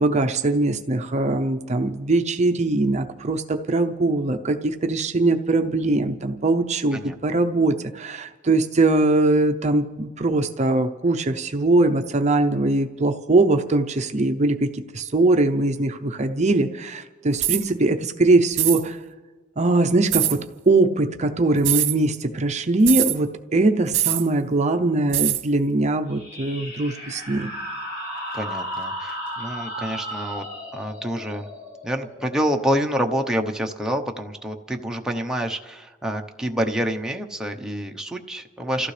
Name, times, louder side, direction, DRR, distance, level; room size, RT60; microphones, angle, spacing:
voice 1, 0.0-19.0 19.6-27.5, right 2 dB, 35° right, 6 dB, 0.6 m, -21 dB
sound 1, 17.4-17.7 18.5-18.8 20.1-20.4 21.6-22.0 22.9-23.2 23.9-24.3 25.1-25.4, right 13 dB, 65° right, 1.1 m, -22 dB
sound 2, 26.1-33.3, equal, 55° left, 5.5 m, -35 dB
voice 2, 28.3-30.4 30.7-31.5 31.8-38.9, equal, 5° right, 2 dB, 0.8 m, -27 dB
29.5 x 15.0 x 3.3 m, 1.3 s
head